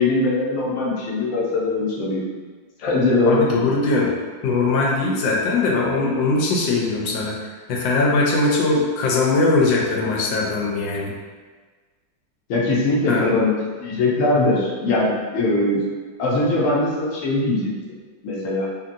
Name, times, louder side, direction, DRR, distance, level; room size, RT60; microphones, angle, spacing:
voice 1, 0.0-2.2 2.8-3.7 12.5-13.6 13.8-15.8 16.2-17.7 18.2-18.7, left 2 dB, 60° left, -5 dB, 0.8 m, -21 dB
voice 2, 3.3-4.2 4.4-7.3 7.7-11.1 13.1-13.4, left 3 dB, 85° left, -3 dB, 1.3 m, -20 dB
2.8 x 2.7 x 2.5 m, 1.4 s
omnidirectional pair, 2.0 m